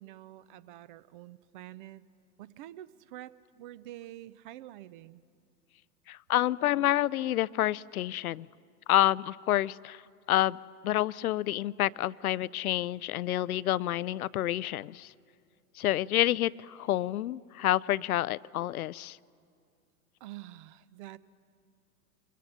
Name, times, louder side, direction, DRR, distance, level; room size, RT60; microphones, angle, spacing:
voice 1, 0.0-2.0 2.4-5.2 20.2-21.2, right 14 dB, 35° right, 19 dB, 0.5 m, -47 dB
voice 2, 6.1-8.5 8.9-10.0 10.3-10.6 10.8-15.1 15.8-19.2, left 14 dB, 65° left, 21 dB, 0.5 m, -28 dB
24.0 x 22.5 x 6.8 m, 2.3 s
figure-of-eight pair, 100°, 47 cm